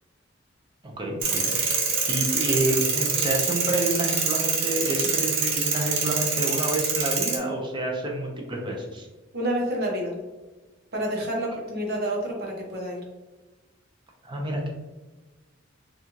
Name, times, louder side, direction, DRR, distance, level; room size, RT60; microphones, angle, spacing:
voice 1, 1.0-1.6 2.1-9.1 14.2-14.7, right 1 dB, 25° right, 0 dB, 0.7 m, -28 dB
sound 1, 1.2-7.4, right 5 dB, 90° right, 0.8 m, -25 dB
voice 2, 9.3-10.1 10.9-13.0, right 1 dB, 55° right, -2 dB, 1.1 m, -28 dB
4.2 x 2.5 x 2.9 m, 1.2 s
head